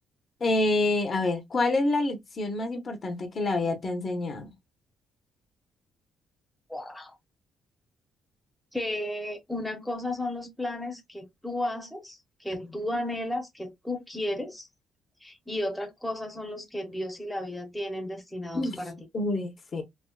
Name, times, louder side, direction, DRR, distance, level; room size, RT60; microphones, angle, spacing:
voice 1, 0.4-4.5 18.5-18.8 19.1-19.8, left 2 dB, 35° left, 0.8 m, -27 dB
voice 2, 6.7-7.2 8.7-14.7 15.2-19.0, left 1 dB, ahead, 0.8 m, -33 dB
3.4 x 2.2 x 2.3 m
cardioid pair, 135°, 0 cm